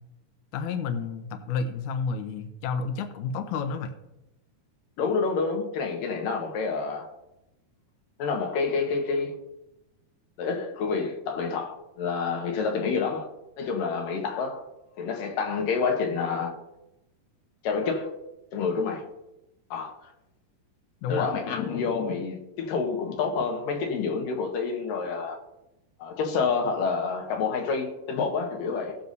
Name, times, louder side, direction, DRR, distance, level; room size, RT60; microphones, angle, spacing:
voice 1, 0.5-3.9 21.0-21.3, left 5 dB, 85° left, 1.7 m, -30 dB
voice 2, 5.0-7.1 8.2-9.3 10.4-13.3 13.6-14.6 15.0-16.5 17.6-18.1 18.5-19.0 19.7-19.9 21.1-25.4 26.0-29.0, left 5 dB, 65° left, 2.8 m, -28 dB
19.0 x 7.0 x 2.7 m
omnidirectional pair, 4.6 m